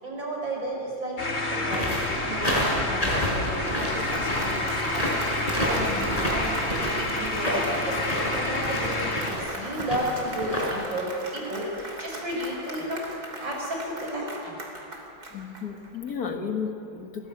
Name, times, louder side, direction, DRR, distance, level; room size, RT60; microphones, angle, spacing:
voice 1, 0.0-1.2 1.5-2.0 2.2-5.1 5.6-13.0 13.4-14.6, right 1 dB, 75° right, -1 dB, 7.0 m, -33 dB
sound 1, 1.2-9.3, left 2 dB, 35° left, 2.6 m, -29 dB
sound 2, 1.7-10.7, equal, 20° left, 5.6 m, -29 dB
Applause, 3.6-16.1, right 2 dB, 50° right, 3.7 m, -39 dB
voice 2, 15.3-17.3, left 6 dB, 50° left, 4 dB, 2.2 m, -34 dB
28.0 x 20.5 x 8.8 m, 2.7 s
omnidirectional pair, 2.1 m